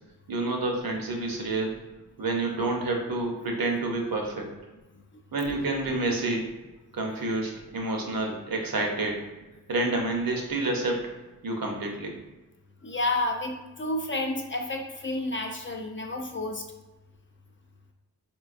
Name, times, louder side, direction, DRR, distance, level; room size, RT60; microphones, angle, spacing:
voice 1, 0.3-1.7 2.2-4.5 5.3-6.5 6.9-9.3 9.7-11.1 11.4-12.1, right 2 dB, 70° right, 1 dB, 0.7 m, -28 dB
voice 2, 12.8-16.6, left 2 dB, 35° left, 2 dB, 0.4 m, -30 dB
4.0 x 2.2 x 2.4 m, 1.1 s
wide cardioid pair, 55°, 36 cm